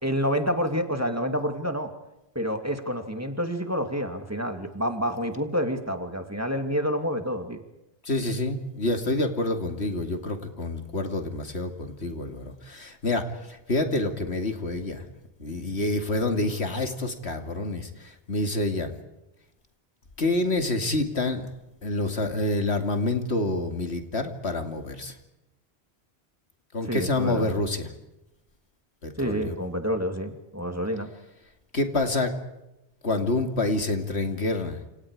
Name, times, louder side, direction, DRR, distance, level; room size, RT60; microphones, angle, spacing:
voice 1, 0.0-1.9 2.3-7.6 26.9-27.6 29.2-31.1, equal, 15° right, 6 dB, 2.5 m, -28 dB
voice 2, 8.0-15.0 15.4-18.9 20.2-21.5 21.8-25.2 26.7-27.9 29.0-29.5 31.7-32.3 33.0-34.8, left 2 dB, 85° left, 6 dB, 2.7 m, -27 dB
29.5 x 27.5 x 4.9 m, 0.92 s
omnidirectional pair, 1.1 m